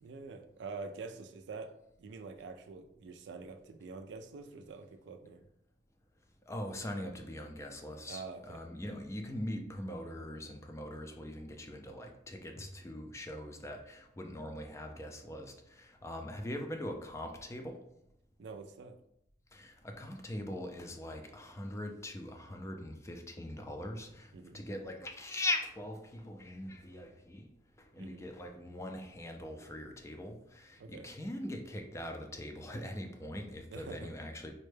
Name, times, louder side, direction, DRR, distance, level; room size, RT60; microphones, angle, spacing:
voice 1, 0.0-1.7 2.0-5.5 8.1-9.0 18.4-19.0 24.3-24.6 28.0-28.3 30.8-31.1 33.7-34.1, right 4 dB, 70° right, 6 dB, 0.4 m, -46 dB
voice 2, 6.5-17.8 19.5-27.5 27.8-34.5, left 1 dB, 15° left, 4 dB, 0.4 m, -41 dB
4.2 x 2.2 x 3.2 m, 0.78 s
head